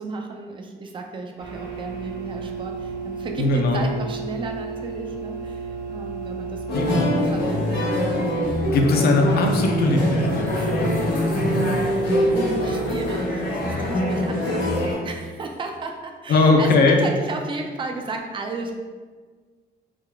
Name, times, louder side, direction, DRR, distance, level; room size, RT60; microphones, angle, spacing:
voice 1, 0.0-8.2 12.0-18.7, right 3 dB, 30° right, 3 dB, 0.4 m, -34 dB
sound 1, 1.4-13.1, right 4 dB, 75° right, 1.1 m, -34 dB
voice 2, 3.4-3.8 6.7-6.9 8.7-10.9 16.3-17.0, left 3 dB, 65° left, 2 dB, 0.5 m, -19 dB
sound 2, 6.7-14.9, left 1 dB, 80° left, 1.2 m, -23 dB
3.6 x 2.4 x 3.3 m, 1.5 s
cardioid pair, 135°, 18 cm